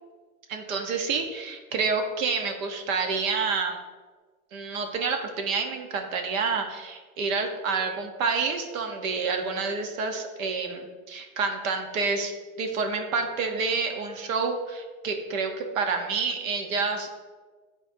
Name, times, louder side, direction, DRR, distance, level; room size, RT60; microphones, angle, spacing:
voice 1, 0.5-3.8 4.5-12.3 12.6-17.1, right 4 dB, 65° right, 5 dB, 1.0 m, -28 dB
8.8 x 4.4 x 2.7 m, 1.4 s
supercardioid pair, 155°, 43 cm